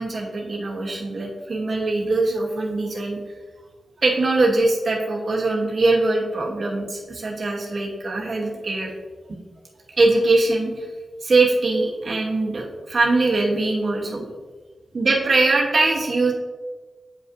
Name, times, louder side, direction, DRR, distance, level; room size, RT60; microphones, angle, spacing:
voice 1, 0.0-3.2 4.0-8.9 10.0-10.9 11.2-14.2 14.9-16.3, right 2 dB, 40° right, -1 dB, 1.1 m, -22 dB
8.7 x 5.3 x 2.6 m, 1.4 s
wide cardioid pair, 160°, 0 cm